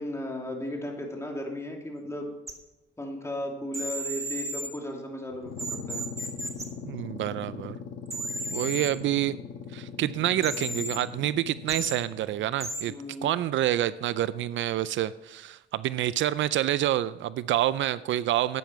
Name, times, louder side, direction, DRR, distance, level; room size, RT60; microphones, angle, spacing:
voice 1, 0.0-2.3 3.0-6.0 12.9-13.3, left 1 dB, 15° left, 0 dB, 3.0 m, -35 dB
sound 1, 2.5-2.6 3.7-4.7 5.6-6.6 8.1-8.9 10.4-11.0 11.7-11.9 12.6-12.8, right 1 dB, 15° right, 1.8 m, -33 dB
sound 2, 5.3-12.7, left 6 dB, 85° left, 1.4 m, -41 dB
voice 2, 6.8-7.8 8.5-9.3 9.7-12.9 13.2-18.6, right 13 dB, 70° right, 17 dB, 0.4 m, -27 dB
12.0 x 9.2 x 4.7 m, 1.0 s
cardioid pair, 90°, 20 cm